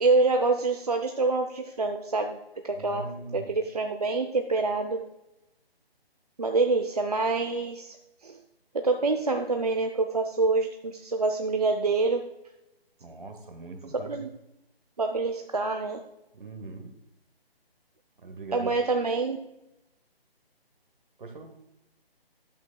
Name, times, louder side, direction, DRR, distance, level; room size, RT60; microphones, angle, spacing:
voice 1, 0.0-5.0 6.4-8.0 8.2-8.4 8.7-12.3 14.1-14.3 15.0-16.0 18.5-19.4, right 3 dB, 40° right, 5 dB, 0.5 m, -26 dB
voice 2, 2.7-3.5 13.0-14.3 16.3-16.9 18.2-18.7 21.2-21.6, right 3 dB, 55° right, 7 dB, 1.4 m, -41 dB
11.5 x 8.0 x 2.3 m, 0.89 s
figure-of-eight pair, 150°, 30 cm